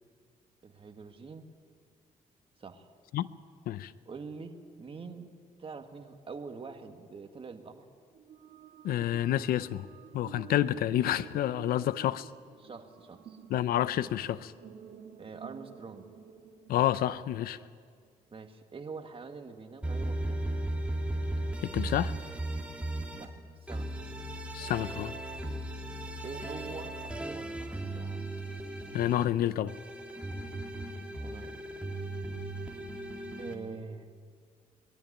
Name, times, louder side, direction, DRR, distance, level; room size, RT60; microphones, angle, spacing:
voice 1, 0.6-1.5 2.6-2.9 4.1-5.3 5.6-7.9 12.6-13.4 15.2-16.1 18.3-20.4 23.1-23.3 23.6-23.9 26.2-28.2 31.2-31.6 33.4-34.1, right 4 dB, 35° right, 6 dB, 1.7 m, -44 dB
sound 1, 8.1-17.5, right 8 dB, 75° right, 1.6 m, -50 dB
voice 2, 8.8-9.9 10.1-12.3 13.5-14.5 16.7-17.6 21.6-22.1 24.5-25.1 28.9-29.7, left 12 dB, 85° left, 16 dB, 0.5 m, -29 dB
sound 2, 19.8-23.3 23.7-29.2 29.7-33.5, right 1 dB, 10° right, 2.4 m, -36 dB
21.0 x 12.5 x 9.9 m, 2.1 s
cardioid pair, 95°, 15 cm